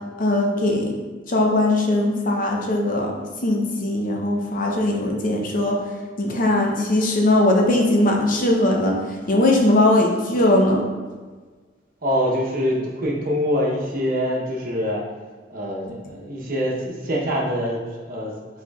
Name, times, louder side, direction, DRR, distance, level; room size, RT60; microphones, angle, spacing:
voice 1, 0.2-0.9 1.3-3.1 3.4-5.8 6.2-9.0 9.3-10.9, left 1 dB, 50° left, 0 dB, 0.7 m, -19 dB
voice 2, 12.0-15.1 15.5-18.4, equal, 50° right, -2 dB, 0.8 m, -24 dB
4.3 x 4.2 x 2.3 m, 1.4 s
head